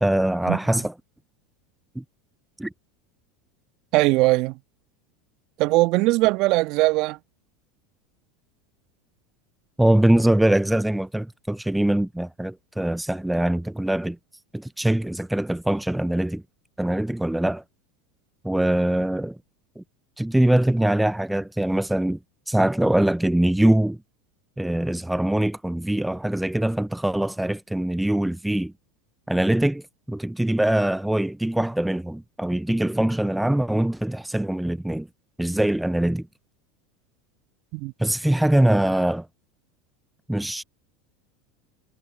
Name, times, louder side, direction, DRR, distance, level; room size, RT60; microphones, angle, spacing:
voice 1, 0.0-0.9 2.0-2.1 2.6-2.7 9.8-14.2 14.5-16.4 16.8-17.6 18.4-19.4 19.8-19.9 20.2-22.2 22.5-24.0 24.6-28.7 29.3-35.1 35.4-36.3 38.0-39.3 40.3-40.6, right 1 dB, 5° right, 0.5 m, -23 dB
voice 2, 3.9-4.6 5.6-7.2 37.7-37.9, right 21 dB, 55° right, 1.4 m, -20 dB
hypercardioid pair, 90°, 0 cm